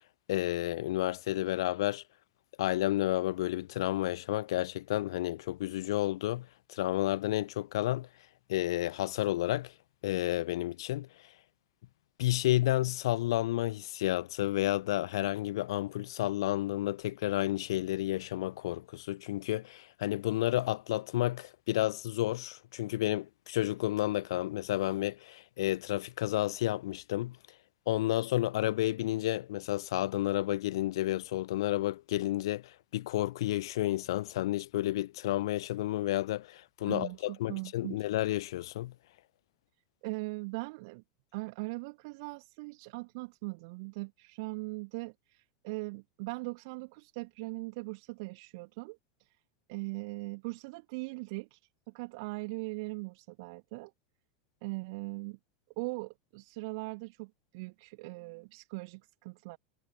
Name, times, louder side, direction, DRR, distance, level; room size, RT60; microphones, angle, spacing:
voice 1, 0.3-2.0 2.6-8.1 8.5-9.7 10.0-11.1 12.2-27.4 27.9-38.9, left 15 dB, 60° left, 0.6 m, -31 dB
voice 2, 36.9-38.1 40.0-41.0 41.3-49.4 49.7-51.6 51.9-53.9 54.6-55.4 55.8-59.6, right 27 dB, 50° right, 1.9 m, -40 dB
figure-of-eight pair, 80°, 3 cm